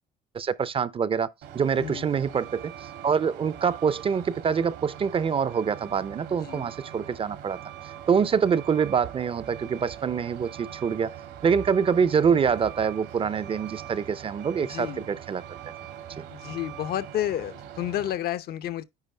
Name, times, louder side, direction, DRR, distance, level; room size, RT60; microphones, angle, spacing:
voice 1, 0.3-1.3 1.5-2.7 3.0-7.6 8.1-11.1 11.4-15.6 16.2-16.3, right 6 dB, 35° right, 0.5 m, -25 dB
Truck, 1.4-18.2, right 10 dB, 80° right, 1.9 m, -42 dB
voice 2, 6.3-6.7 14.6-15.1 16.3-18.8, left 12 dB, 65° left, 0.8 m, -31 dB
9.6 x 4.8 x 3.3 m
cardioid pair, 110°, 17 cm